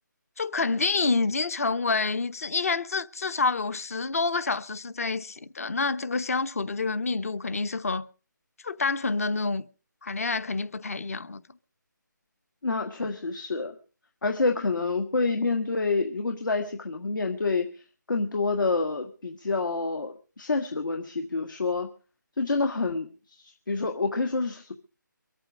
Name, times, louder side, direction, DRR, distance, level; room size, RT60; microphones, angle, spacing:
voice 1, 0.4-8.1 8.6-9.7 10.0-11.4, left 4 dB, 45° left, 0.9 m, -28 dB
voice 2, 12.6-13.7 14.2-17.7 18.1-21.9 22.4-23.1 23.4-24.7, left 3 dB, 70° left, 1.7 m, -27 dB
23.5 x 8.8 x 5.0 m
figure-of-eight pair, 165°, 11 cm